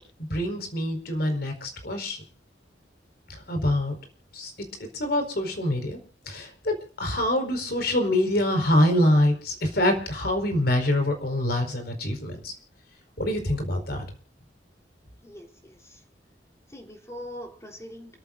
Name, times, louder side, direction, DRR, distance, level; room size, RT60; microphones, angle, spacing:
voice 1, 0.3-2.2 3.3-4.0 4.3-4.5 4.8-6.0 6.3-12.5 13.2-14.0, left 1 dB, 60° left, 4 dB, 4.8 m, -25 dB
voice 2, 15.2-16.0 16.7-18.2, left 1 dB, 15° left, 2 dB, 3.5 m, -42 dB
29.0 x 14.0 x 2.6 m, 0.40 s
head